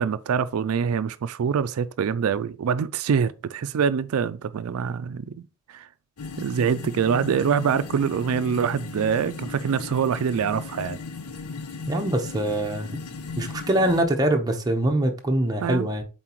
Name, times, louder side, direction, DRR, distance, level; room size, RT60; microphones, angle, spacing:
voice 1, 0.0-5.9 6.4-11.0 15.6-15.9, right 7 dB, 80° right, 0.4 m, -25 dB
sound 1, 6.2-14.0, left 4 dB, 90° left, 0.7 m, -36 dB
voice 2, 11.9-12.9 13.4-16.0, right 1 dB, 15° right, 0.9 m, -23 dB
7.5 x 4.1 x 3.0 m
head